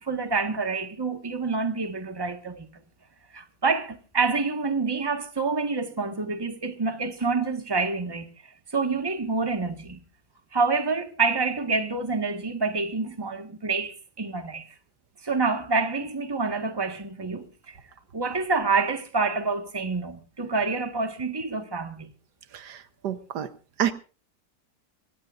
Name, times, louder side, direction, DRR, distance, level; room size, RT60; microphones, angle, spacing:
voice 1, 0.0-2.7 3.3-8.3 8.7-10.0 10.5-14.7 15.2-17.8 18.1-22.1, right 4 dB, 15° right, 1.5 m, -27 dB
voice 2, 23.0-23.5 23.8-23.9, right 9 dB, 75° right, 1.6 m, -27 dB
24.5 x 18.0 x 2.5 m
omnidirectional pair, 1.8 m